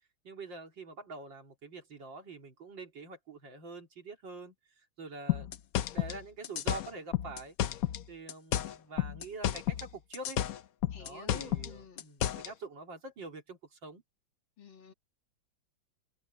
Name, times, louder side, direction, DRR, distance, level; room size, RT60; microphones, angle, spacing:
voice 1, 0.2-4.5 5.0-5.5 5.9-7.6 8.1-10.4 11.0-14.0, right 3 dB, 70° right, 3.7 m, -45 dB
sound 1, 5.3-8.0 8.3-9.9 10.1-12.5, left 12 dB, 60° left, 1.0 m, -32 dB
voice 2, 10.9-12.0 14.6-14.9, left 6 dB, 85° left, 3.2 m, -49 dB
omnidirectional pair, 2.1 m